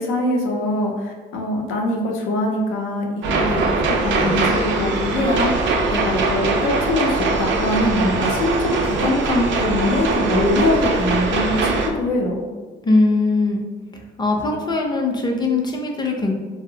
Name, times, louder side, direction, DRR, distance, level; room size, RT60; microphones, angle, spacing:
voice 1, 0.0-3.6 3.9-12.5, left 1 dB, 85° left, 0 dB, 0.6 m, -23 dB
sound 1, 3.2-11.9, right 3 dB, 70° right, 0.4 m, -21 dB
voice 2, 12.8-13.7 14.2-16.3, left 3 dB, 20° left, 1 dB, 0.5 m, -20 dB
2.8 x 2.0 x 2.6 m, 1.4 s
cardioid pair, 90°, 20 cm